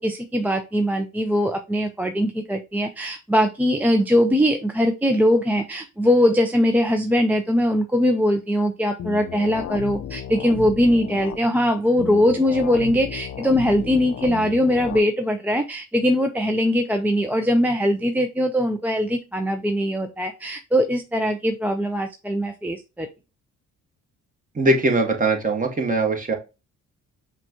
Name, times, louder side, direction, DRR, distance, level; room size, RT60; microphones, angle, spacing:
voice 1, 0.0-23.1, equal, 5° right, 5 dB, 0.4 m, -21 dB
sound 1, 9.0-11.4 12.0-15.0, left 9 dB, 50° left, 0.5 m, -33 dB
voice 2, 24.6-26.3, right 2 dB, 25° right, 2 dB, 1.1 m, -21 dB
5.8 x 2.3 x 2.8 m, 0.28 s
cardioid pair, 90°, 30 cm